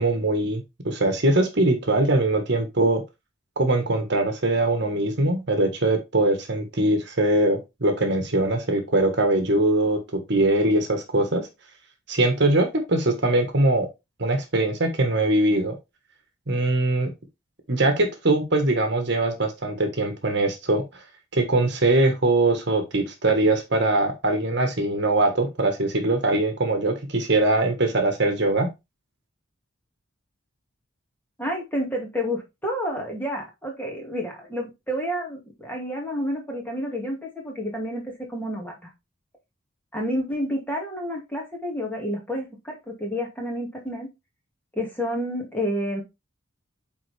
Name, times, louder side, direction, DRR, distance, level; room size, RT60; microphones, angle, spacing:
voice 1, 0.0-3.0 3.6-11.4 12.1-13.9 14.2-15.7 16.5-17.1 17.7-20.8 21.3-28.7, right 2 dB, 55° right, 5 dB, 1.4 m, -22 dB
voice 2, 31.4-38.9 39.9-44.1 44.7-46.0, equal, 10° left, 0 dB, 2.1 m, -30 dB
8.7 x 3.8 x 3.4 m, 0.23 s
head